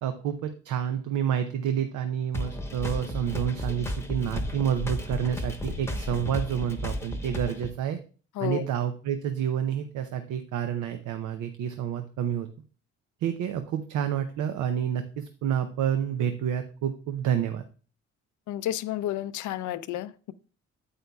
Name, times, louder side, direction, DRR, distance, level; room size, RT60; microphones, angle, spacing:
voice 1, 0.0-8.0 8.4-12.5 13.2-17.6, right 9 dB, 80° right, 0.6 m, -29 dB
sound 1, 2.3-7.7, left 1 dB, 10° left, 0.9 m, -33 dB
voice 2, 18.5-20.3, left 12 dB, 75° left, 0.5 m, -31 dB
8.8 x 8.3 x 2.3 m
cardioid pair, 90°, 30 cm